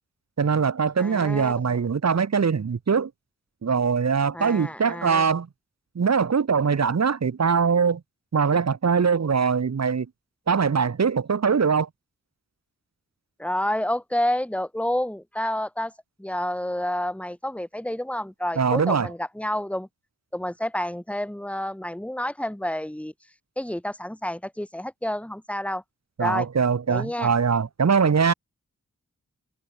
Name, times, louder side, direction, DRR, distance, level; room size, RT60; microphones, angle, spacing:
voice 1, 0.4-3.1 3.6-5.5 5.9-8.0 8.3-10.1 10.5-11.9 18.6-19.1 26.2-28.3, right 6 dB, 55° right, 1.5 m, -22 dB
voice 2, 1.0-1.5 4.3-5.3 13.4-15.9 16.2-19.9 20.3-23.1 23.6-25.8 26.2-26.5 26.9-27.3, left 1 dB, 5° left, 1.8 m, -29 dB
cardioid pair, 45°, 31 cm